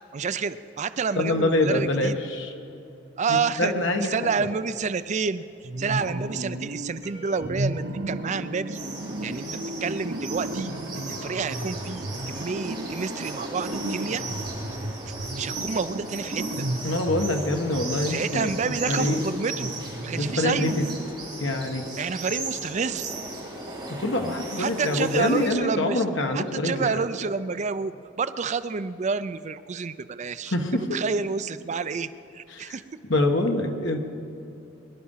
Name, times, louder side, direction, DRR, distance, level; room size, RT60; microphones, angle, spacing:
voice 1, 0.1-2.2 3.2-3.7 4.0-5.4 5.8-8.8 9.2-10.7 11.0-14.2 15.1-16.7 18.0-19.7 20.0-20.8 22.0-23.2 24.6-26.0 26.3-32.8, right 5 dB, 35° right, 13 dB, 0.4 m, -29 dB
voice 2, 1.2-2.5 3.6-4.3 16.8-18.5 18.9-19.2 20.2-20.8 21.4-21.8 23.9-27.0 30.5-30.8 32.5-32.8 33.1-34.0, left 1 dB, 70° left, 4 dB, 1.6 m, -25 dB
sound 1, 5.6-7.0 7.4-21.3, right 1 dB, 70° right, 1.2 m, -34 dB
sound 2, 7.0-9.9, right 1 dB, 30° left, 2.2 m, -49 dB
sound 3, 8.7-25.5, right 2 dB, 20° right, 4.0 m, -36 dB
22.0 x 11.5 x 5.6 m, 2.8 s
head